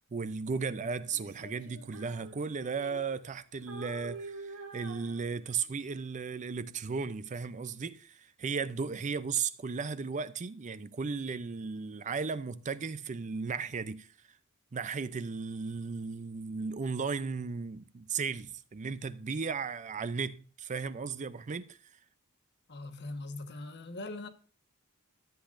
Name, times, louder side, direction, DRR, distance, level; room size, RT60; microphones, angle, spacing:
voice 1, 0.0-14.1 14.7-21.8, right 5 dB, 35° right, 0.5 m, -35 dB
Female singing, 1.1-3.4 3.7-5.7, right 3 dB, 85° right, 2.6 m, -47 dB
voice 2, 22.7-24.3, left 2 dB, 50° left, 1.2 m, -41 dB
13.5 x 8.1 x 2.5 m
head